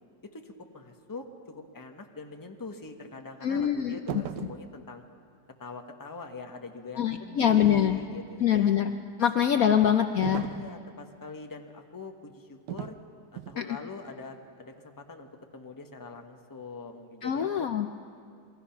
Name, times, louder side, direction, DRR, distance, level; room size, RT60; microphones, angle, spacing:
voice 1, 0.3-5.0 5.6-8.7 9.6-9.9 10.5-13.0 13.3-17.7, left 2 dB, 15° left, 4 dB, 1.1 m, -43 dB
voice 2, 3.4-4.2 7.0-8.0 8.4-8.9 9.2-10.5 13.6-13.7 17.2-17.9, left 9 dB, 60° left, 6 dB, 1.0 m, -24 dB
sound 1, 4.1-4.7 10.2-10.7 12.7-13.0 13.4-13.6, right 11 dB, 75° right, 1.3 m, -36 dB
27.5 x 22.0 x 5.9 m, 2.3 s
omnidirectional pair, 1.9 m